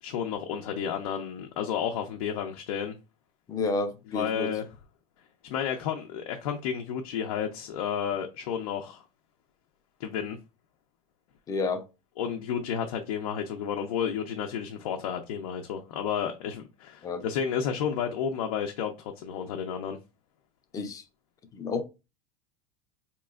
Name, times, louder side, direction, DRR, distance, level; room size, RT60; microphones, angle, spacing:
voice 1, 0.0-3.0 4.1-4.7 5.4-9.0 10.0-10.4 12.2-20.0, left 8 dB, 85° left, 0.6 m, -31 dB
voice 2, 3.5-4.5 11.5-11.8 17.0-17.2 20.7-21.0 21.5-21.8, left 3 dB, 20° left, 0.4 m, -30 dB
4.2 x 2.9 x 2.3 m
supercardioid pair, 155°, 18 cm